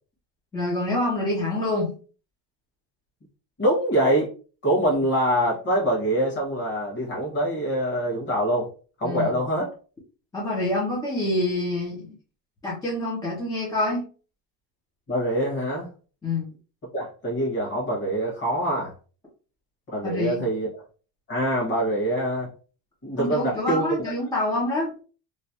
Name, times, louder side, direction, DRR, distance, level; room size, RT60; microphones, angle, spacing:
voice 1, 0.5-1.9 9.0-9.3 10.3-12.1 12.6-14.1 16.2-16.5 20.0-20.5 23.2-24.9, left 1 dB, 10° left, -6 dB, 0.5 m, -26 dB
voice 2, 3.6-4.3 4.6-8.7 9.0-9.7 15.1-15.9 16.9-18.9 19.9-20.7 21.3-22.5 23.0-23.8, right 1 dB, 30° left, -3 dB, 1.4 m, -24 dB
3.1 x 2.2 x 2.7 m, 0.38 s
cardioid pair, 165°, 40 cm